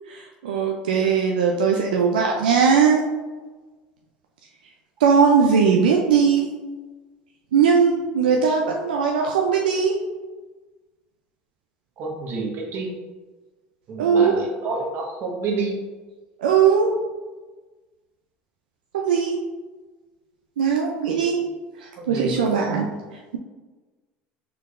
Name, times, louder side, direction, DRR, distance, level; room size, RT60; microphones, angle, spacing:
voice 1, 0.1-3.0 5.0-6.5 7.5-10.0 14.0-14.5 16.4-16.9 18.9-19.4 20.6-21.4 21.8-22.9, right 6 dB, 90° right, 1 dB, 0.4 m, -19 dB
voice 2, 12.0-12.9 13.9-15.7 22.0-22.4, right 3 dB, 55° right, -1 dB, 1.1 m, -28 dB
4.5 x 3.8 x 2.4 m, 1.3 s
hypercardioid pair, 80°, 5 cm